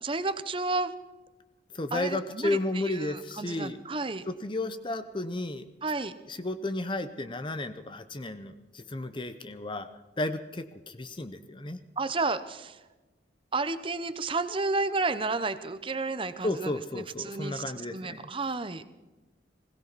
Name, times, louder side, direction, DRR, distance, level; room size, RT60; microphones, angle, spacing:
voice 1, 0.0-0.9 1.9-4.2 5.8-6.1 12.0-12.8 13.5-17.6 17.9-18.8, right 3 dB, 30° right, 12 dB, 0.8 m, -31 dB
voice 2, 1.7-3.8 4.3-5.7 6.3-9.9 10.2-11.8 16.4-18.3, left 2 dB, 25° left, 10 dB, 0.7 m, -33 dB
20.5 x 17.0 x 4.1 m, 1.1 s
head